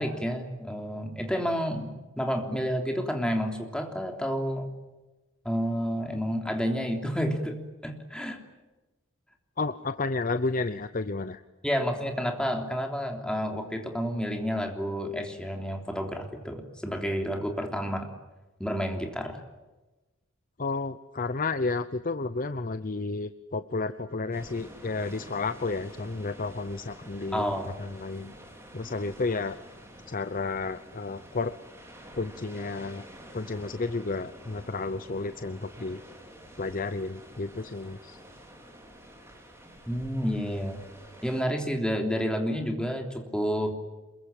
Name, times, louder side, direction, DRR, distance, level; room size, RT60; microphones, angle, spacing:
voice 1, 0.0-4.7 5.4-8.4 11.6-18.1 18.6-19.4 27.3-27.7 39.9-40.8 41.2-43.7, equal, 5° left, 3 dB, 3.4 m, -30 dB
voice 2, 9.6-11.4 20.6-28.3 28.7-29.6 30.1-31.5 32.2-33.0 33.3-36.0 36.6-38.2, left 3 dB, 40° left, 11 dB, 0.8 m, -32 dB
sound 1, 24.3-41.4, right 1 dB, 15° right, 5.2 m, -49 dB
27.0 x 22.5 x 9.1 m, 1.1 s
head